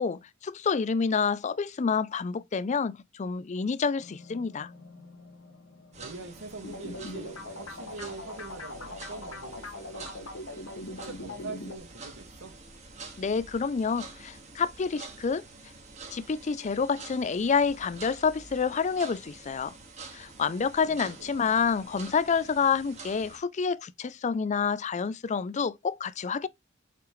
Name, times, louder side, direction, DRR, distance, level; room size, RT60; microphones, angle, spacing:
voice 1, 0.0-4.7 13.2-15.4 16.1-19.7 20.1-26.5, left 5 dB, 35° left, 0.4 m, -28 dB
sound 1, 4.0-16.9 17.4-17.5, left 3 dB, 65° left, 1.6 m, -56 dB
sound 2, 5.9-23.4, right 3 dB, 35° right, 1.8 m, -47 dB
voice 2, 6.0-10.2 10.8-12.5 20.8-21.6, right 3 dB, 70° right, 1.8 m, -44 dB
sound 3, 6.6-11.8, left 2 dB, 85° left, 1.9 m, -41 dB
5.9 x 5.7 x 3.1 m
head